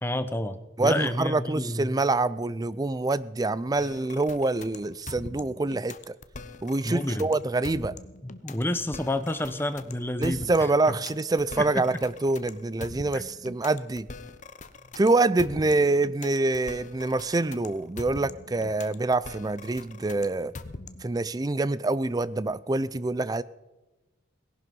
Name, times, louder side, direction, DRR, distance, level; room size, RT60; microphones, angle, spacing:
voice 1, 0.0-1.9 6.8-7.3 8.2-10.5 11.6-12.0 13.1-13.2, left 1 dB, 10° left, 0.8 m, -30 dB
voice 2, 0.8-6.1 6.6-7.9 10.2-14.1 15.0-20.5 21.0-23.4, right 2 dB, 20° right, 0.4 m, -26 dB
sound 1, 3.8-21.2, left 3 dB, 40° left, 0.8 m, -43 dB
18.0 x 11.0 x 5.3 m
head